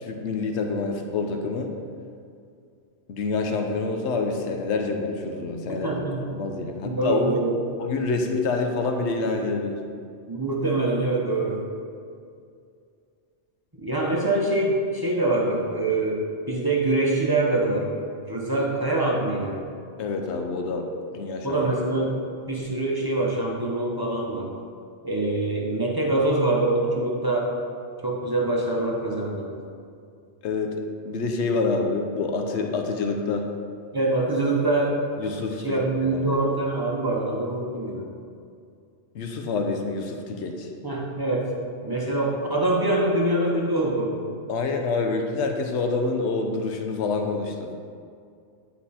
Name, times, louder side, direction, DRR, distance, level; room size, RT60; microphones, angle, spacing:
voice 1, 0.0-1.7 3.1-5.9 6.3-7.4 7.9-9.8 20.0-20.9 21.1-21.6 30.4-33.5 35.2-36.3 39.1-40.7 44.5-47.7, left 3 dB, 80° left, 4 dB, 1.0 m, -27 dB
voice 2, 5.8-6.3 6.8-7.8 10.3-11.7 13.8-17.9 18.3-19.6 21.4-24.5 25.0-27.5 28.0-29.5 33.9-35.0 35.6-38.1 40.8-41.5 41.8-44.2, right 2 dB, 20° right, -3 dB, 0.8 m, -24 dB
9.6 x 4.1 x 4.2 m, 2.3 s
omnidirectional pair, 1.2 m